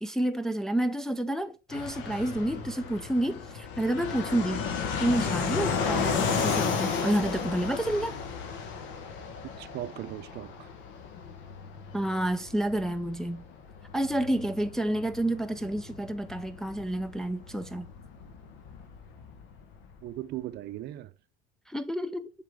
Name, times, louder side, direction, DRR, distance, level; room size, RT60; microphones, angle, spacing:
voice 1, 0.0-4.7 5.0-8.1 11.9-13.4 13.9-17.9 21.7-22.3, right 1 dB, ahead, 0.4 m, -29 dB
Fixed-wing aircraft airplane, 1.7-20.1, left 6 dB, 65° left, 1.2 m, -34 dB
voice 2, 9.6-10.7 20.0-21.1, right 14 dB, 55° right, 0.6 m, -38 dB
7.4 x 3.7 x 3.6 m
supercardioid pair, 95°, 21 cm